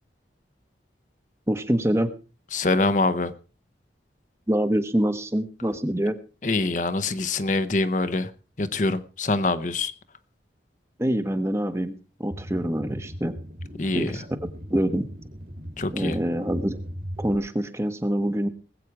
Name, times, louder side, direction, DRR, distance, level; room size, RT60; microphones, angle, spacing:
voice 1, 1.5-2.1 4.5-6.2 11.0-11.9 12.2-13.4 13.9-14.2 14.7-15.1 15.9-16.8 17.2-18.5, right 1 dB, 15° right, 10 dB, 1.0 m, -25 dB
voice 2, 2.5-3.3 6.4-8.3 8.6-9.9 13.8-14.1 15.8-16.2, left 2 dB, 45° left, 11 dB, 0.8 m, -24 dB
sound 1, 12.3-17.4, equal, 55° right, 2.4 m, -38 dB
20.0 x 8.3 x 4.7 m, 0.35 s
head